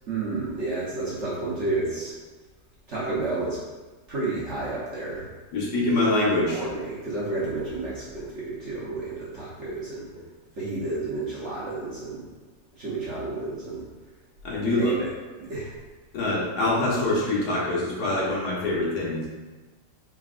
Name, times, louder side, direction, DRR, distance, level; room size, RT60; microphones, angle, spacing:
voice 1, 0.1-2.2 2.9-3.6 4.1-5.3 6.5-10.1 10.6-12.3 12.8-13.8 14.6-15.1 15.4-15.8, right 3 dB, 50° right, -8 dB, 1.0 m, -31 dB
voice 2, 5.5-6.6 14.4-14.9 16.1-19.3, left 2 dB, 65° left, -5 dB, 1.4 m, -24 dB
4.4 x 3.6 x 2.4 m, 1.3 s
omnidirectional pair, 1.9 m